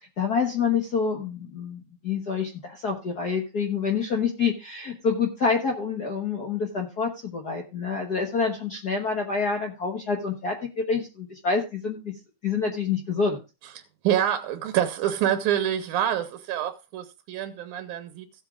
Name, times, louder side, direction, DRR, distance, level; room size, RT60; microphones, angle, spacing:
voice 1, 0.2-12.1 12.4-13.4, left 5 dB, 55° left, 1.1 m, -27 dB
voice 2, 14.0-18.3, right 10 dB, 90° right, 2.3 m, -26 dB
16.0 x 8.2 x 2.4 m
omnidirectional pair, 3.4 m